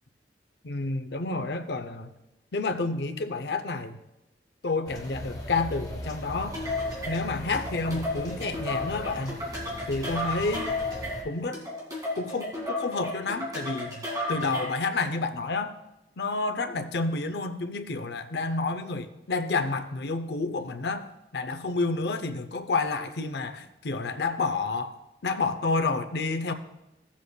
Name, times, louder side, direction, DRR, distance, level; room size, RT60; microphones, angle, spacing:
voice 1, 0.6-2.1 2.5-4.0 4.6-6.6 7.1-9.4 9.9-10.7 11.2-11.6 12.2-15.8 16.2-21.1 21.3-25.0 25.2-26.5, left 3 dB, 75° left, 9 dB, 0.6 m, -29 dB
sound 1, 4.9-11.2, left 1 dB, 20° left, 1.0 m, -39 dB
sound 2, 6.5-14.9, left 2 dB, 20° right, 2.2 m, -33 dB
15.5 x 7.2 x 2.3 m, 0.94 s
head